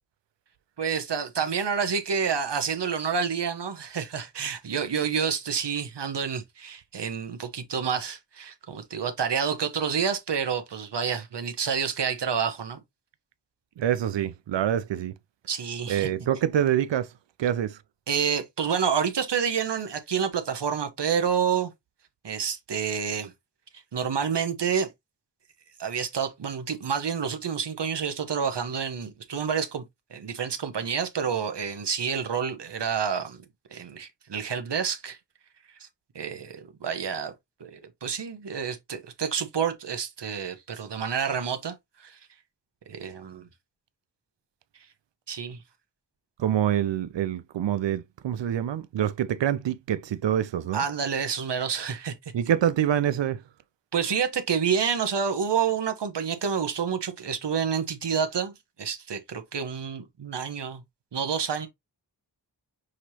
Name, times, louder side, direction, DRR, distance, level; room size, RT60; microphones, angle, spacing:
voice 1, 0.8-12.8 15.5-16.1 18.1-21.7 22.2-23.3 23.7-24.9 25.8-29.8 30.1-35.2 35.8-35.9 36.1-37.3 37.6-42.2 42.9-43.5 45.3-45.6 50.7-52.1 53.9-58.5 58.8-60.8 61.1-61.7, right 7 dB, 75° right, 1.0 m, -28 dB
voice 2, 13.8-15.1 15.9-17.1 17.4-17.8 46.4-50.8 52.3-53.4, right 10 dB, 90° right, 0.6 m, -26 dB
6.4 x 3.0 x 2.7 m
cardioid pair, 50°, 42 cm